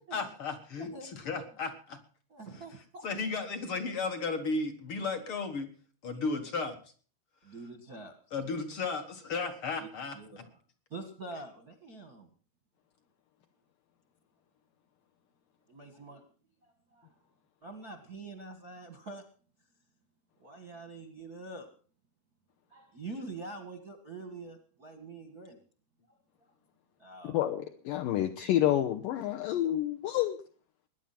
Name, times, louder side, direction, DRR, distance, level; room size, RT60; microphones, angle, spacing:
voice 1, 0.1-2.0 2.5-2.6 3.0-5.7 6.0-6.9 8.3-10.4, left 4 dB, 55° left, 8 dB, 1.5 m, -34 dB
voice 2, 0.8-1.1 2.3-3.1 6.1-6.3 7.4-8.1 9.8-9.9 10.1-10.3 10.9-12.3 15.7-16.2 16.6-17.1 17.6-19.2 20.4-21.7 22.7-25.6 27.0-27.4, right 3 dB, 50° right, 5 dB, 1.0 m, -45 dB
voice 3, 27.2-30.4, left 12 dB, 75° left, 5 dB, 2.3 m, -29 dB
21.0 x 10.0 x 5.8 m, 0.43 s
omnidirectional pair, 4.5 m